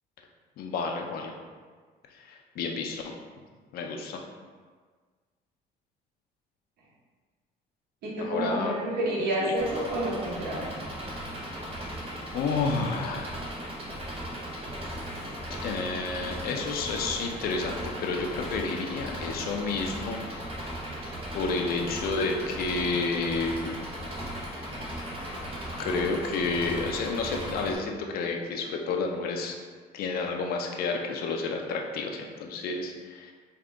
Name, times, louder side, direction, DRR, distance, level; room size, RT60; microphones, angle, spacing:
voice 1, 0.6-1.3 2.2-3.1 3.7-4.2 8.2-8.7 9.4-9.5 11.4-11.6 12.3-13.4 15.6-20.2 21.3-23.8 25.8-29.6 29.9-33.3, left 4 dB, 65° left, 2 dB, 0.5 m, -30 dB
voice 2, 8.0-10.7, right 1 dB, 70° right, -5 dB, 1.0 m, -29 dB
Engine, 9.6-27.8, equal, 35° right, 0.8 m, -37 dB
3.5 x 2.4 x 3.7 m, 1.5 s
cardioid pair, 110°, 17 cm